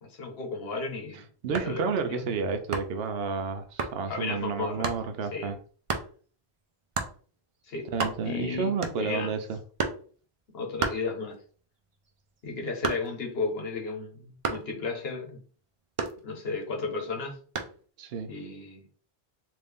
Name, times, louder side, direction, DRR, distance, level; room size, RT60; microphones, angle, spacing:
voice 1, 0.0-2.2 4.1-4.9 5.3-5.6 7.7-7.9 8.2-8.7 9.0-9.3 10.5-11.4 12.4-15.4 16.2-17.4 18.3-18.9, left 4 dB, 70° left, 1 dB, 1.2 m, -34 dB
sound 1, 1.4-1.8 2.7-3.1 3.8-4.0 4.8-5.1 5.9-6.1 6.9-7.2 7.6-7.7 7.9-8.4 8.8-9.2 9.8-10.1 10.8-11.5 11.9-13.3 14.4-14.8 16.0-16.6 17.6-17.8, right 4 dB, 45° right, 0.4 m, -32 dB
voice 2, 1.4-5.6 7.8-9.6 18.0-18.3, right 5 dB, 75° right, 7 dB, 0.8 m, -31 dB
3.2 x 2.6 x 3.5 m, 0.42 s
omnidirectional pair, 1.1 m